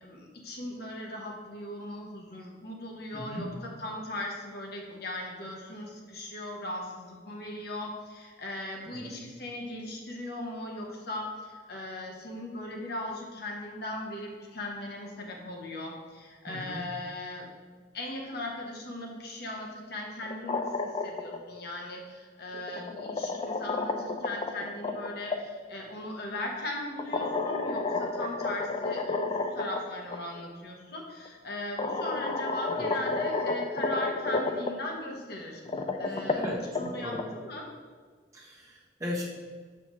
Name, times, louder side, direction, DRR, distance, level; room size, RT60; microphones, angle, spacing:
voice 1, 0.0-3.5 3.8-17.5 17.9-37.7, left 1 dB, 60° left, 0 dB, 1.1 m, -38 dB
voice 2, 3.1-3.5 8.8-9.1 16.5-16.8 28.3-28.4 32.7-32.9 36.0-37.3 38.3-39.2, left 1 dB, 20° right, -4 dB, 1.1 m, -38 dB
sound 1, 20.2-21.4 22.5-25.4 27.0-29.8 30.1-30.2 31.3-31.4 31.8-34.7 35.5-37.2, left 3 dB, 30° left, 0.4 m, -31 dB
6.7 x 5.7 x 3.2 m, 1.5 s
head